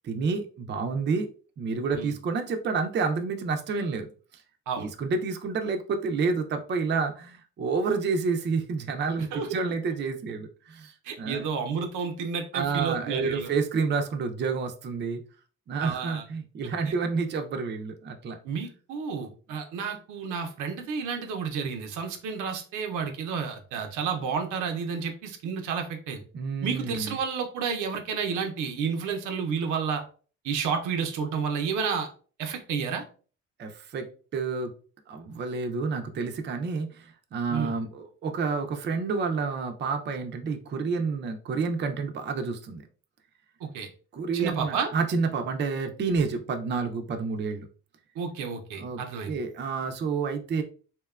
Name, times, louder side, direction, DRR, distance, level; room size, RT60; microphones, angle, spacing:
voice 1, 0.0-1.3 1.6-4.1 4.8-10.9 11.2-11.5 12.5-15.2 15.7-18.4 26.3-27.1 33.6-34.1 34.3-34.7 35.1-42.8 44.1-47.7 48.8-49.0 49.3-50.6, right 4 dB, 35° right, 5 dB, 0.4 m, -29 dB
voice 2, 11.0-13.5 15.8-16.2 18.4-26.2 26.6-30.0 30.4-32.1 32.4-33.0 37.5-37.7 43.6-43.9 44.3-44.9 48.2-49.3, right 6 dB, 85° right, 4 dB, 0.6 m, -31 dB
2.8 x 2.2 x 2.3 m, 0.39 s
cardioid pair, 90°, 30 cm